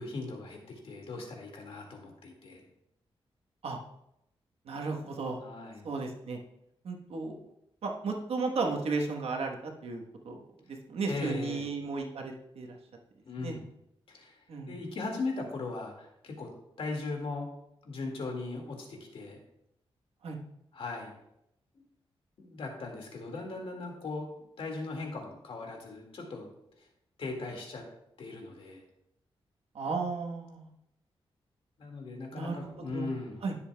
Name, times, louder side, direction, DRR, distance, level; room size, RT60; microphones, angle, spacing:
voice 1, 0.0-2.6 5.4-5.9 11.0-11.7 13.3-13.6 14.1-14.4 14.7-16.5 16.8-17.5 17.8-19.4 20.7-21.1 22.4-24.3 24.6-26.5 27.2-27.8 28.2-28.8 31.8-33.4, left 3 dB, 70° left, 1 dB, 2.1 m, -38 dB
voice 2, 4.6-5.4 5.8-6.4 6.8-7.5 7.8-12.8 13.4-13.6 14.5-14.8 20.2-20.4 29.7-30.7 32.3-33.1 33.4-33.5, right 4 dB, 85° right, 1 dB, 1.2 m, -34 dB
15.5 x 7.0 x 2.3 m, 0.81 s
wide cardioid pair, 120°, 10 cm